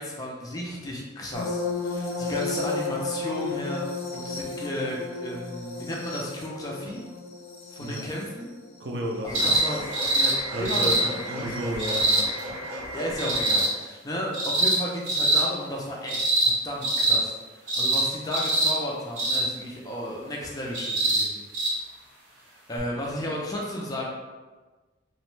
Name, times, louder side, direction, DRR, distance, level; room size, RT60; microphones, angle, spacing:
voice 1, 0.0-3.8 4.1-7.0 7.7-8.5 9.2-9.8 10.1-11.6 12.9-21.4 22.3-24.1, equal, 20° left, -3 dB, 0.4 m, -34 dB
sound 1, 1.3-10.0 11.3-11.6 13.3-13.4, left 4 dB, 80° left, 0.5 m, -34 dB
voice 2, 8.8-9.6 10.5-11.0 11.3-12.2, equal, 60° right, 1 dB, 0.4 m, -32 dB
sound 2, 9.3-13.6, right 1 dB, 30° right, 1.3 m, -35 dB
sound 3, 9.3-9.6 9.9-10.3 10.6-11.0 11.8-12.2 13.2-13.7 14.3-14.8 15.1-15.4 16.1-16.5 16.8-17.2 17.7-18.0 18.3-18.7 19.2-19.4 20.7-21.2 21.5-21.7 22.8-22.9, right 2 dB, 85° right, 0.9 m, -23 dB
2.9 x 2.1 x 3.1 m, 1.3 s
head